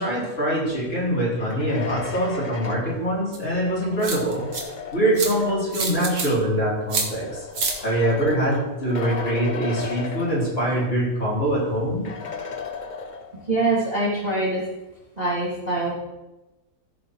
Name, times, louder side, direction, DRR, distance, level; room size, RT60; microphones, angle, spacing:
voice 1, 0.0-4.4 4.9-7.5 7.8-12.1, right 1 dB, 35° left, -7 dB, 4.0 m, -24 dB
sound 1, 1.2-5.9 6.8-11.0 11.3-11.4 12.0-13.6, left 5 dB, 50° left, 0.5 m, -36 dB
sound 2, 3.3-3.4 4.0-4.6 5.1-5.3 5.7-6.3 6.9-7.1 7.5-7.7, right 4 dB, 65° right, 1.9 m, -26 dB
voice 2, 13.5-14.6 15.2-15.9, right 2 dB, 25° right, -6 dB, 2.0 m, -23 dB
14.5 x 5.2 x 4.5 m, 1.0 s
omnidirectional pair, 1.8 m